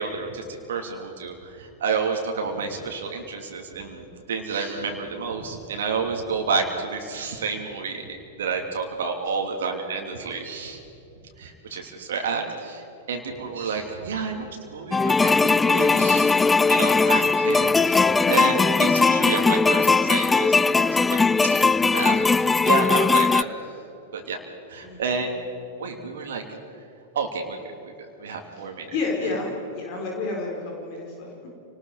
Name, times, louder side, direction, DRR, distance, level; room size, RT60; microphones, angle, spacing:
voice 1, 0.0-10.8 11.4-16.4 16.7-23.5 24.1-24.4 24.7-25.3 25.8-26.4 27.1-27.7 28.2-28.9, right 5 dB, 65° right, 3 dB, 2.8 m, -30 dB
sound 1, 14.9-23.4, left 4 dB, 10° left, 0.5 m, -19 dB
voice 2, 24.8-25.2 28.6-28.7 28.9-31.5, left 3 dB, 45° left, -1 dB, 4.5 m, -30 dB
28.5 x 19.5 x 4.9 m, 2.9 s
figure-of-eight pair, 95°, 0 cm